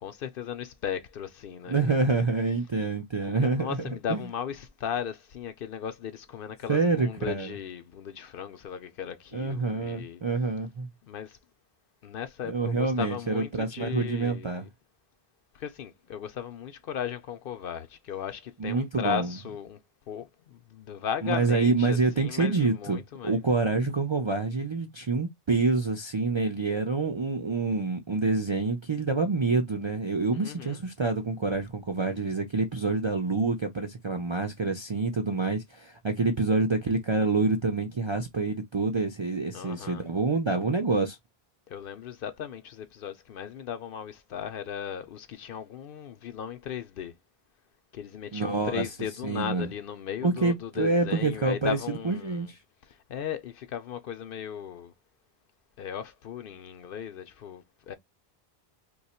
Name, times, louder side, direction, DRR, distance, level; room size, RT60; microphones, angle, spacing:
voice 1, 0.0-2.2 3.4-10.2 11.0-11.4 12.0-14.7 15.5-19.8 20.1-23.4 30.3-30.8 39.5-40.1 41.7-47.1 47.9-52.5 52.8-54.9 55.8-58.0, left 8 dB, 65° left, 0.7 m, -36 dB
voice 2, 1.7-3.8 4.1-4.2 6.7-7.6 9.3-10.9 12.5-14.7 18.6-19.3 21.2-41.2 48.3-48.8 49.2-49.7 50.2-51.8 52.0-52.6, right 3 dB, 40° right, 0.4 m, -27 dB
2.9 x 2.3 x 4.2 m
omnidirectional pair, 1.1 m